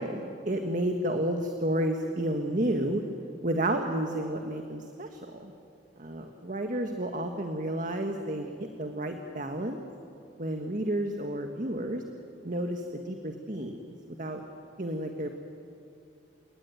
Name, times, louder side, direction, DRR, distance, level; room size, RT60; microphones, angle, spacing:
voice 1, 0.0-3.0 3.4-5.5 6.0-9.8 10.4-12.0 12.4-14.4 14.8-15.3, right 1 dB, 50° right, 5 dB, 1.6 m, -31 dB
29.5 x 19.0 x 9.3 m, 2.6 s
head